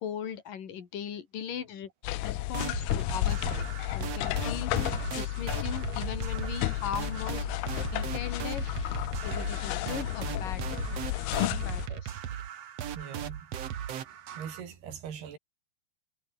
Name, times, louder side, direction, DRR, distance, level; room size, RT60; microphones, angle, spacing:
voice 1, 0.0-1.9 2.2-3.7 3.9-4.7 5.2-7.5 7.9-8.7 9.2-10.7 11.4-12.2, left 8 dB, 55° left, 4.2 m, -38 dB
sound 1, 2.0-11.9, left 17 dB, 75° left, 2.8 m, -32 dB
sound 2, 2.5-14.6, right 9 dB, 55° right, 2.0 m, -38 dB
voice 2, 13.0-13.4 14.3-15.4, right 8 dB, 70° right, 5.4 m, -41 dB
omnidirectional pair, 4.8 m